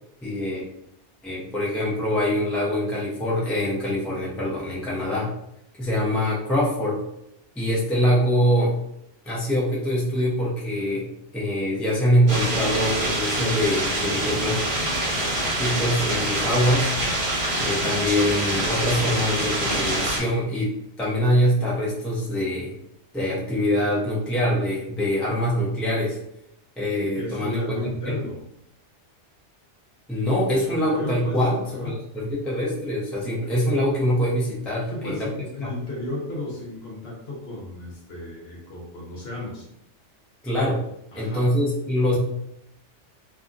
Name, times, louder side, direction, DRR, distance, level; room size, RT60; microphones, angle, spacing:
voice 1, 0.2-0.6 1.2-5.3 5.8-7.0 7.6-8.7 9.2-11.1 11.3-14.7 15.6-16.9 17.6-20.7 21.0-22.7 23.1-26.2 26.8-28.2 30.1-35.3 35.6-35.7 40.4-40.8 41.2-42.2, equal, ahead, -6 dB, 0.4 m, -24 dB
sound 1, 12.3-20.2, right 1 dB, 60° right, 1.2 m, -25 dB
voice 2, 27.0-28.4 30.7-32.0 34.9-39.7 41.1-41.5, left 2 dB, 60° left, -2 dB, 1.0 m, -34 dB
2.7 x 2.5 x 2.4 m, 0.78 s
omnidirectional pair, 1.2 m